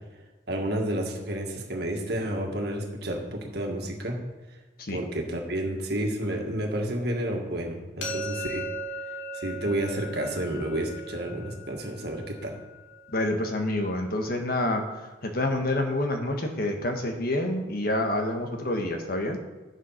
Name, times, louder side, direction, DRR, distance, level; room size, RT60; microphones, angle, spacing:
voice 1, 0.5-4.2 4.9-8.7 9.3-12.6, right 1 dB, 60° right, 1 dB, 1.8 m, -30 dB
sound 1, 8.0-13.8, equal, 80° left, 2.1 m, -38 dB
voice 2, 13.1-14.8 15.2-19.4, left 1 dB, 55° left, 4 dB, 1.4 m, -27 dB
9.3 x 7.3 x 5.8 m, 1.2 s
head